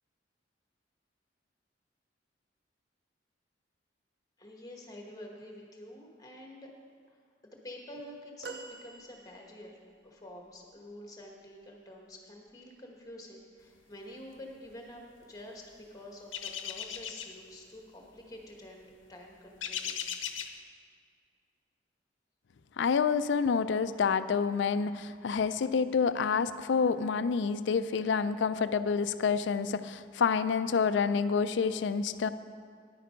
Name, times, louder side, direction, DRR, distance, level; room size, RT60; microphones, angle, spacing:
voice 1, 4.4-6.7 7.4-20.0, left 1 dB, 20° left, 0 dB, 1.3 m, -48 dB
sound 1, 8.4-9.8 10.6-10.7, right 4 dB, 55° right, 0.5 m, -46 dB
sound 2, 16.3-17.4 19.6-20.5, left 8 dB, 85° left, 0.7 m, -37 dB
voice 2, 22.8-32.3, left 5 dB, 70° left, 13 dB, 0.4 m, -28 dB
10.0 x 8.8 x 5.1 m, 2.2 s
head